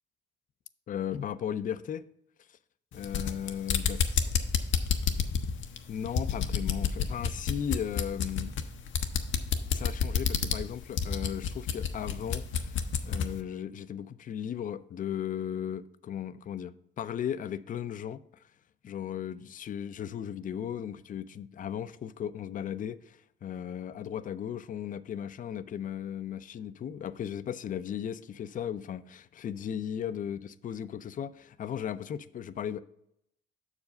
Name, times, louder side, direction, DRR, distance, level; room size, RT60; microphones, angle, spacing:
voice 1, 0.9-2.0 2.9-4.3 5.9-8.6 9.7-12.8 13.0-18.2 18.8-30.4 30.6-32.8, left 9 dB, 40° left, 0.4 m, -36 dB
sound 1, 2.9-13.4, left 7 dB, 75° left, 0.8 m, -30 dB
6.5 x 4.9 x 5.2 m
cardioid pair, 90°, 20 cm